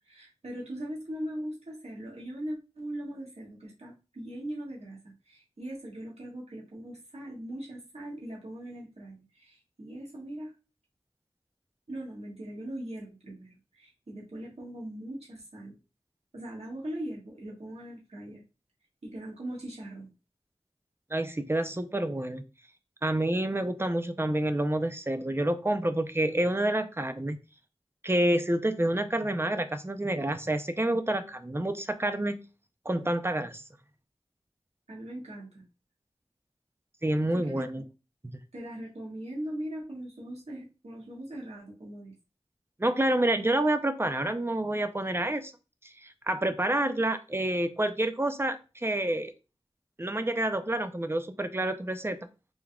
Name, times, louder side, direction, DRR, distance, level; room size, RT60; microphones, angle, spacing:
voice 1, 0.1-10.5 11.9-15.8 16.3-18.4 19.0-20.1 34.9-35.6 37.3-37.9 38.5-42.1, right 1 dB, 75° right, -4 dB, 1.6 m, -40 dB
voice 2, 21.1-22.4 23.0-27.4 28.0-32.4 32.9-33.6 37.0-37.8 38.2-38.4 42.8-45.5 46.0-49.3 50.0-52.2, right 1 dB, 20° right, 9 dB, 0.6 m, -28 dB
5.0 x 3.6 x 2.4 m, 0.30 s
wide cardioid pair, 50°, 11 cm